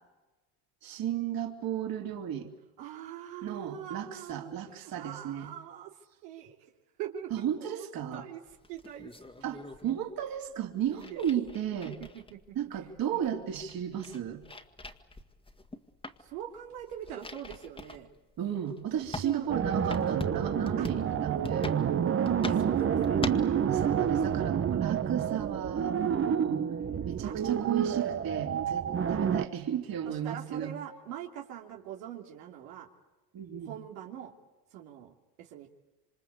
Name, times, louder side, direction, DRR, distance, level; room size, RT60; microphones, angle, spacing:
voice 1, 0.8-2.5 3.4-5.5 7.3-8.2 9.4-11.9 12.5-14.4 18.4-21.7 23.1-23.3 23.7-26.6 27.0-30.7 33.3-33.7, right 9 dB, 45° right, 3 dB, 3.4 m, -34 dB
voice 2, 2.8-6.7 7.0-8.4 8.7-9.1 9.5-10.0 10.9-11.2 12.3-12.4 13.1-13.4 16.2-18.1 18.9-19.5 20.8-20.9 22.5-24.2 27.2-27.3 30.0-32.9 33.6-34.3 34.7-35.7, right 10 dB, 80° right, 1 dB, 3.1 m, -43 dB
sound 1, 8.5-10.0 10.9-12.5 13.0-13.1 13.3-15.8 16.0-16.3 16.8-18.0 18.6-18.7 19.1-23.5, equal, 10° left, 2.0 m, -40 dB
sound 2, 19.5-29.5, right 8 dB, 30° right, 1.1 m, -29 dB
27.5 x 25.5 x 8.3 m, 1.1 s
supercardioid pair, 100°, 47 cm